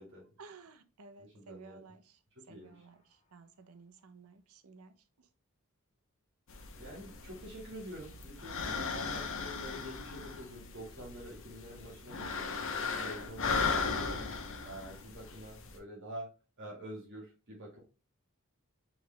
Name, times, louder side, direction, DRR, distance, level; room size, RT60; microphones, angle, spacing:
voice 1, 0.4-2.2 2.5-5.3, right 4 dB, 85° right, 0.7 m, -55 dB
voice 2, 1.2-1.8 2.4-2.8 6.8-16.3 16.6-17.8, equal, 60° right, 1.7 m, -47 dB
sound 1, 2.6-3.5 7.9-10.9 11.2-11.3, right 3 dB, 30° left, 1.4 m, -62 dB
sound 2, 6.5-15.8, left 5 dB, 65° left, 0.8 m, -37 dB
4.8 x 3.3 x 3.2 m
head